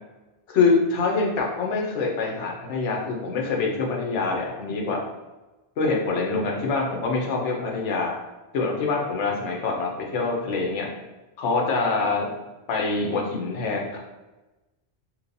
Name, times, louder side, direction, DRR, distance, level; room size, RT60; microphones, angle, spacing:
voice 1, 0.5-5.0 5.8-8.1 8.5-10.9 11.4-12.4 12.7-14.0, left 4 dB, 85° left, -1 dB, 1.0 m, -25 dB
3.0 x 2.8 x 2.6 m, 1.1 s
omnidirectional pair, 1.2 m